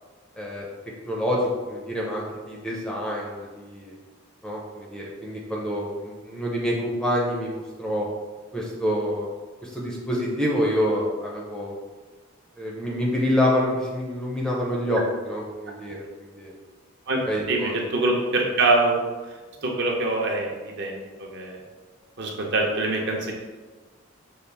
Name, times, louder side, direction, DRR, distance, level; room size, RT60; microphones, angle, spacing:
voice 1, 1.1-3.9 4.4-8.1 8.5-9.3 9.6-11.7 12.6-16.5 17.3-17.7, equal, 5° left, -3 dB, 0.5 m, -27 dB
voice 2, 17.5-18.9 19.6-21.6 22.2-23.3, right 2 dB, 55° right, -1 dB, 0.7 m, -24 dB
5.4 x 2.4 x 3.3 m, 1.3 s
head